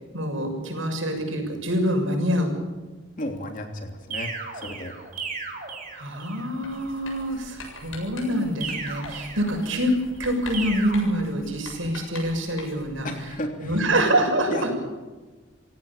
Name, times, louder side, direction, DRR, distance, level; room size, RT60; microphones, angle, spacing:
voice 1, 0.1-2.5 5.9-9.9 10.2-13.1 13.6-14.7, equal, 80° right, 3 dB, 6.7 m, -25 dB
voice 2, 3.2-4.9 13.0-13.8 14.5-14.7, left 1 dB, 40° left, 4 dB, 3.2 m, -33 dB
sound 1, 4.1-6.5 8.6-10.0 10.5-11.0, right 5 dB, 40° right, 4.4 m, -35 dB
Writing, 6.6-13.0, left 2 dB, 85° left, 7.5 m, -43 dB
27.5 x 17.0 x 7.3 m, 1.2 s
head